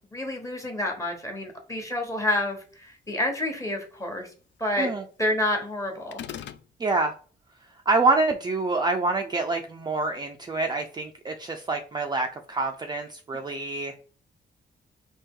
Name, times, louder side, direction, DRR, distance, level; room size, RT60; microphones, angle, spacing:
voice 1, 0.1-4.3 4.6-4.9 5.2-6.2, left 1 dB, 15° left, 3 dB, 1.1 m, -28 dB
sound 1, 6.1-6.7, left 10 dB, 75° left, 0.4 m, -37 dB
voice 2, 6.8-7.1 7.9-13.9, right 3 dB, 25° right, 3 dB, 0.4 m, -26 dB
4.4 x 2.9 x 3.6 m, 0.40 s
wide cardioid pair, 165°, 19 cm